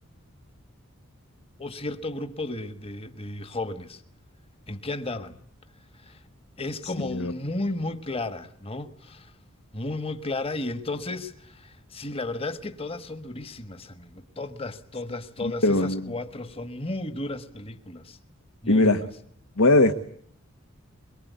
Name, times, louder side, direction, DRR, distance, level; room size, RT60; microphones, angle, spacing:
voice 1, 1.6-4.0 4.7-5.4 6.0-6.2 6.6-9.3 9.7-18.2 18.6-19.1, left 2 dB, 25° left, 1.4 m, -34 dB
voice 2, 15.6-16.1 18.7-19.0 19.6-19.9, left 2 dB, 80° left, 1.4 m, -19 dB
23.5 x 22.5 x 9.4 m
head